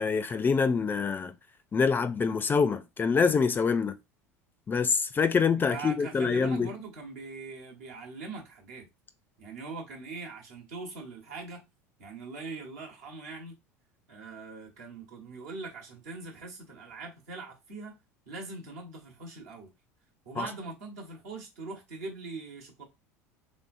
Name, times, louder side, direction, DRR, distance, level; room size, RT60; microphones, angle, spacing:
voice 1, 0.0-1.3 1.7-4.0 4.7-6.7 20.4-20.5, left 5 dB, 25° left, 0.4 m, -25 dB
voice 2, 5.6-8.9 9.4-11.6 12.0-13.6 14.1-17.9 18.3-19.7 20.2-22.8, right 3 dB, 70° right, 1.1 m, -41 dB
3.2 x 2.7 x 2.5 m
hypercardioid pair, 75°, 8 cm